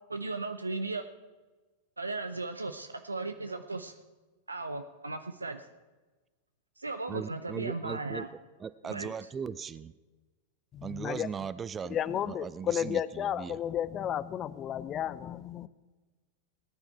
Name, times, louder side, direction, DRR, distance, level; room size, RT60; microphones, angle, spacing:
voice 1, 0.1-1.0 2.0-3.9 4.5-5.7 6.8-8.3 8.8-9.1, right 3 dB, 80° right, 8 dB, 0.6 m, -36 dB
voice 2, 7.1-9.9 10.8-12.0 12.2-13.0 13.4-13.6, right 6 dB, 20° right, 17 dB, 0.4 m, -38 dB
voice 3, 10.7-11.3 11.9-15.7, left 10 dB, 30° left, 18 dB, 0.5 m, -33 dB
18.5 x 9.7 x 4.7 m, 1.2 s
figure-of-eight pair, 90°, 0 cm